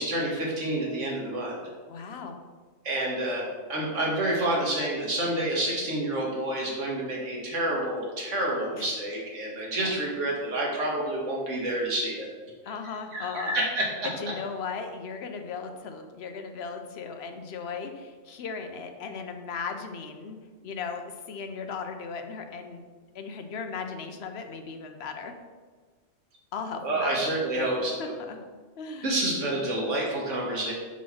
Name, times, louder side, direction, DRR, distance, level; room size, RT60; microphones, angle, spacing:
voice 1, 0.0-1.6 2.8-12.3 13.1-13.9 26.8-28.1 29.0-30.7, right 1 dB, 80° right, -3 dB, 1.8 m, -28 dB
voice 2, 1.8-2.4 8.7-8.9 9.8-9.9 12.6-13.6 14.2-20.4 20.6-22.8 23.1-25.3 26.5-28.4 28.8-29.2, left 5 dB, 65° left, 6 dB, 0.9 m, -37 dB
4.7 x 4.2 x 5.8 m, 1.4 s
omnidirectional pair, 1.3 m